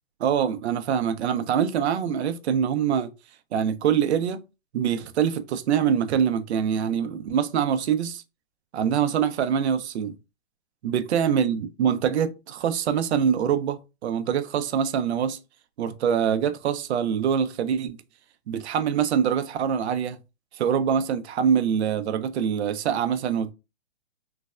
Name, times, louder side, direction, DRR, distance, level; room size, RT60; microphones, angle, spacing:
voice 1, 0.2-3.1 3.5-4.4 4.7-8.2 8.7-10.2 10.8-15.4 15.8-18.0 18.5-20.2 20.6-23.5, right 8 dB, 80° right, 0.5 m, -24 dB
3.3 x 2.1 x 2.3 m
hypercardioid pair, 170°, 33 cm